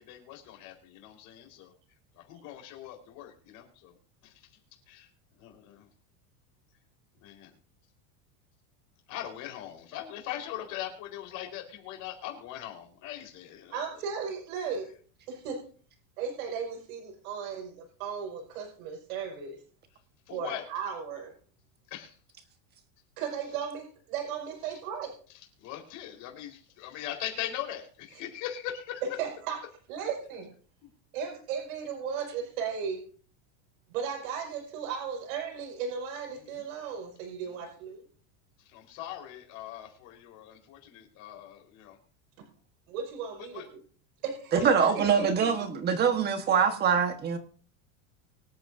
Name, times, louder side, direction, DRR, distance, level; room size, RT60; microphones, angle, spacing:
voice 1, 0.0-1.7 2.1-4.0 4.2-4.5 4.9-5.1 5.4-5.9 7.2-7.5 9.1-14.0 20.3-20.6 21.9-22.1 25.6-29.0 36.3-36.7 37.4-37.5 38.6-42.0 43.4-43.7 44.5-45.3, left 11 dB, 45° left, 4.3 m, -41 dB
voice 2, 13.7-14.9 15.3-15.6 16.2-19.6 20.3-21.3 23.2-25.1 29.2-29.6 29.9-30.5 31.1-33.0 33.9-38.0 42.9-43.8 44.2-44.7 45.2-45.5, right 7 dB, 80° right, 5.4 m, -36 dB
voice 3, 44.5-47.4, right 6 dB, 25° right, 1.3 m, -24 dB
24.5 x 8.7 x 2.6 m
supercardioid pair, 165°, 41 cm